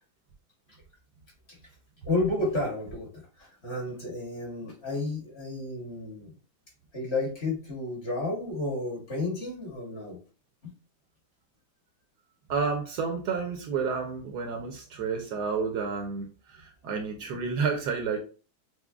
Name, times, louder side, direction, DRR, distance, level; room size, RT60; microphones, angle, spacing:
voice 1, 2.0-6.3 6.9-10.2 10.6-10.7, left 2 dB, 40° left, -3 dB, 1.3 m, -32 dB
voice 2, 12.5-18.2, right 5 dB, 80° right, 3 dB, 1.3 m, -30 dB
6.1 x 2.0 x 2.3 m, 0.36 s
omnidirectional pair, 1.8 m